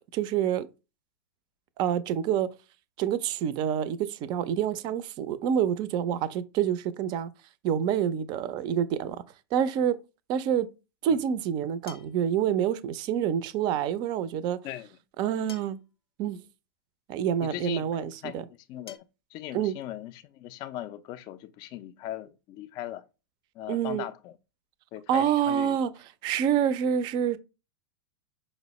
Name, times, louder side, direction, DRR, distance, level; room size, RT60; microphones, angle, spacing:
voice 1, 0.1-0.7 1.8-2.5 3.0-7.3 7.6-9.2 9.5-10.0 10.3-10.7 11.0-14.6 15.2-15.8 16.2-16.4 17.1-18.4 19.5-19.7 23.7-24.0 25.1-25.9 26.2-27.4, right 9 dB, 35° right, 0.4 m, -27 dB
sound 1, 10.1-10.2 11.9-12.4 13.9-14.0 15.5-15.9 17.1-17.2 18.9-19.0, left 8 dB, 80° left, 0.6 m, -48 dB
voice 2, 17.4-18.4 18.7-19.0 19.3-23.1 23.6-24.3 24.9-25.8, left 13 dB, 35° left, 0.3 m, -39 dB
5.2 x 2.0 x 2.9 m
hypercardioid pair, 105°, 13 cm